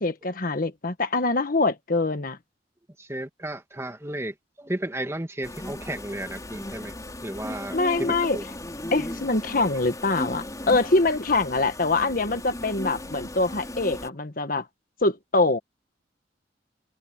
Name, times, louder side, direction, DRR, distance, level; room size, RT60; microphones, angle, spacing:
voice 1, 0.0-2.4 7.7-8.4 8.9-14.6 15.0-15.6, left 3 dB, 55° left, 1.5 m, -24 dB
voice 2, 3.0-6.9 7.2-8.4, right 1 dB, 15° right, 2.1 m, -33 dB
sound 1, 5.4-14.1, left 1 dB, 20° left, 4.3 m, -37 dB
head